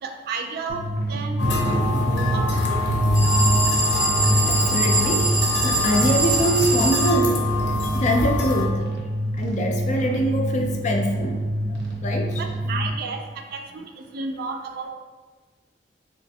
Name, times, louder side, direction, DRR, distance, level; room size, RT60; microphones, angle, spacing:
voice 1, 0.0-2.8 12.3-14.9, right 4 dB, 60° right, 6 dB, 0.3 m, -33 dB
sound 1, 0.7-12.9, right 1 dB, 90° right, 0.8 m, -27 dB
sound 2, 1.4-8.7, left 2 dB, 75° left, 0.7 m, -24 dB
sound 3, 3.1-7.1, right 3 dB, 10° right, 0.7 m, -24 dB
voice 2, 3.4-7.5 7.9-8.9 9.3-12.8 13.3-13.8, equal, 40° left, 3 dB, 0.4 m, -25 dB
3.3 x 3.0 x 2.6 m, 1.4 s
head